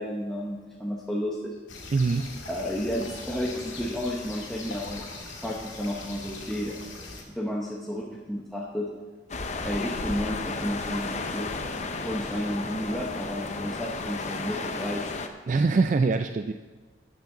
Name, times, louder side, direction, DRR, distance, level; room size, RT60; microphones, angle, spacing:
voice 1, 0.0-1.5 2.5-7.1 7.3-8.9 9.6-11.5 12.0-15.3, equal, ahead, -3 dB, 0.9 m, -32 dB
sound 1, 1.7-7.2, left 2 dB, 90° left, 2.0 m, -41 dB
voice 2, 1.9-2.3 15.5-16.5, right 4 dB, 40° right, 8 dB, 0.3 m, -23 dB
sound 2, 9.3-15.3, left 3 dB, 40° left, 0.7 m, -33 dB
13.0 x 8.3 x 3.9 m, 1.4 s
head